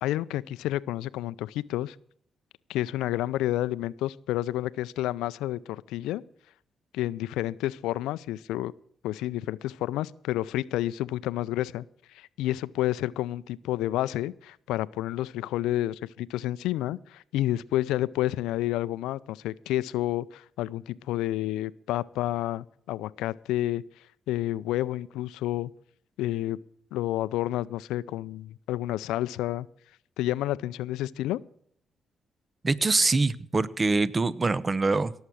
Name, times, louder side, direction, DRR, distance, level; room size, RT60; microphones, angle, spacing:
voice 1, 0.0-2.0 2.7-6.2 6.9-8.7 9.0-11.8 12.1-23.8 24.3-25.7 26.2-26.6 26.9-29.7 30.2-31.4, left 15 dB, 80° left, 18 dB, 0.4 m, -30 dB
voice 2, 32.6-35.1, right 3 dB, 35° right, 19 dB, 0.8 m, -24 dB
17.5 x 7.3 x 6.2 m, 0.65 s
hypercardioid pair, 45°, 0 cm